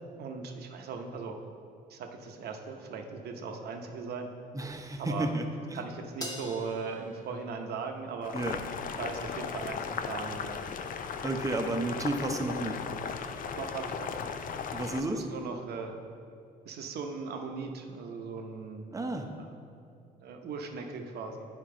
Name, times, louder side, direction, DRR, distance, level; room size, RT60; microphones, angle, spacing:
voice 1, 0.2-1.4 1.9-4.3 5.0-5.3 5.7-8.4 9.0-10.6 13.6-14.3 15.0-15.9 16.6-18.9 19.3-19.5 20.2-21.5, right 5 dB, 70° right, 4 dB, 0.8 m, -38 dB
voice 2, 4.5-5.4 5.7-5.8 8.3-8.6 11.2-12.8 14.7-15.2 18.9-19.3, right 2 dB, 20° right, 4 dB, 0.8 m, -32 dB
Crash cymbal, 6.2-8.7, left 1 dB, 20° left, 1.2 m, -44 dB
Boiling, 8.2-15.0, left 6 dB, 55° left, 0.5 m, -37 dB
8.7 x 4.4 x 3.8 m, 2.4 s
supercardioid pair, 75°, 17 cm